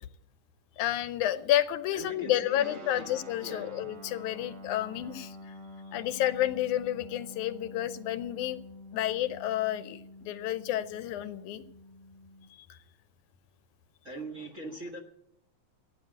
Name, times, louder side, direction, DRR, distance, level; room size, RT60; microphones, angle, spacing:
voice 1, 0.8-5.4 5.9-8.6 8.9-11.6, left 13 dB, 80° left, 13 dB, 2.1 m, -30 dB
voice 2, 1.9-3.0 3.4-3.9 14.0-15.0, equal, 35° right, 4 dB, 1.5 m, -41 dB
Guitar, 2.6-12.5, left 1 dB, 85° right, 5.7 m, -48 dB
14.0 x 10.0 x 7.7 m, 0.74 s
omnidirectional pair, 3.5 m